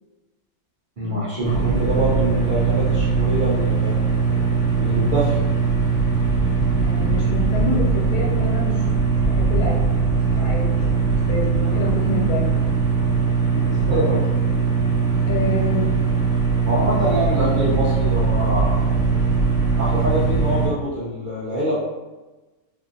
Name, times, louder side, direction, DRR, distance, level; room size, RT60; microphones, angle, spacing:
voice 1, 1.0-4.0 4.8-5.5 11.6-11.8 13.7-14.2 14.5-14.6 16.6-18.8 19.8-21.7, right 1 dB, 60° right, -9 dB, 0.5 m, -25 dB
sound 1, 1.4-20.7, right 5 dB, 20° left, 0.6 m, -20 dB
voice 2, 6.5-10.8 11.2-12.5 13.6-13.7 15.3-15.9 17.3-17.7, left 2 dB, 75° left, -4 dB, 1.3 m, -28 dB
2.6 x 2.6 x 2.5 m, 1.1 s
omnidirectional pair, 1.6 m